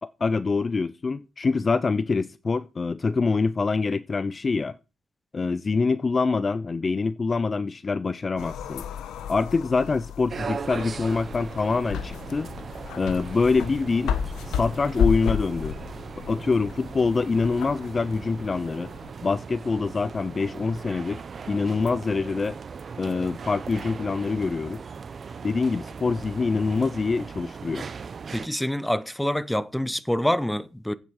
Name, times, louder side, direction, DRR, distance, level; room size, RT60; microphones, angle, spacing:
voice 1, 0.0-4.7 5.3-8.8 9.3-12.5 13.0-14.2 14.5-15.7 16.3-18.9 19.2-21.2 21.5-22.6 23.0-24.8 25.4-27.9, left 4 dB, 30° left, 0.5 m, -25 dB
sound 1, 8.4-19.1, left 8 dB, 80° left, 1.2 m, -32 dB
sound 2, 10.3-28.5, right 5 dB, 40° right, 0.8 m, -39 dB
voice 2, 28.3-30.9, left 1 dB, 5° left, 0.8 m, -26 dB
12.0 x 8.8 x 4.8 m
cardioid pair, 90°, 0 cm